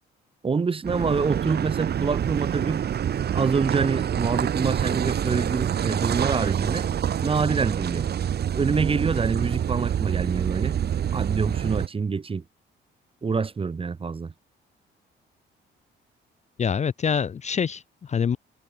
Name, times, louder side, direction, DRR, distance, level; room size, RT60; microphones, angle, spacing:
voice 1, 0.4-2.8 3.3-6.9 7.2-8.1 8.5-10.8 11.1-12.4 13.2-14.3, right 5 dB, 25° right, 1.0 m, -26 dB
Car passing by / Idling / Accelerating revving vroom, 0.8-11.9, right 9 dB, 55° right, 1.3 m, -26 dB
voice 2, 16.6-18.4, left 7 dB, 35° left, 0.6 m, -25 dB
cardioid pair, 90°, 20 cm